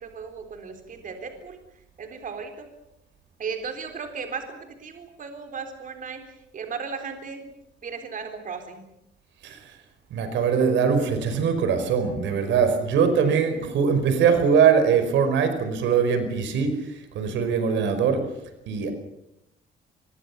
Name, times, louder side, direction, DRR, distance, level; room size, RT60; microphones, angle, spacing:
voice 1, 0.0-1.6 2.0-2.7 3.4-6.2 6.5-7.5 7.8-8.8, right 5 dB, 45° right, 6 dB, 3.8 m, -36 dB
voice 2, 10.1-18.3 18.7-18.9, right 6 dB, 85° right, 9 dB, 4.8 m, -22 dB
25.0 x 22.5 x 7.2 m, 0.83 s
cardioid pair, 125°, 19 cm